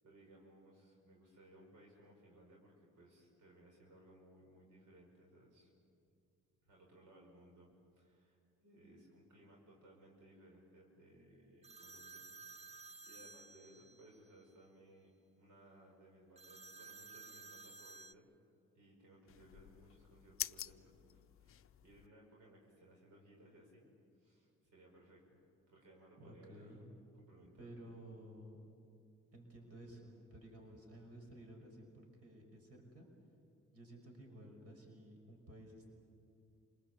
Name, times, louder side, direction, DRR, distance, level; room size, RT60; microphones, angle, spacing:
voice 1, 0.0-5.7 6.6-12.2 12.6-15.1 15.4-18.3 18.7-23.9 24.2-25.4 25.7-26.9 27.1-27.8, right 1 dB, 75° right, 0 dB, 5.3 m, -62 dB
sound 1, 11.6-14.2 16.4-18.1, right 4 dB, 20° right, 0.6 m, -54 dB
sound 2, 19.3-22.1, left 11 dB, 45° left, 0.6 m, -47 dB
voice 2, 26.2-26.9 27.6-28.6 29.3-33.1 33.7-35.9, right 1 dB, 50° right, 2 dB, 5.9 m, -54 dB
28.0 x 20.0 x 8.4 m, 2.5 s
cardioid pair, 90°, 30 cm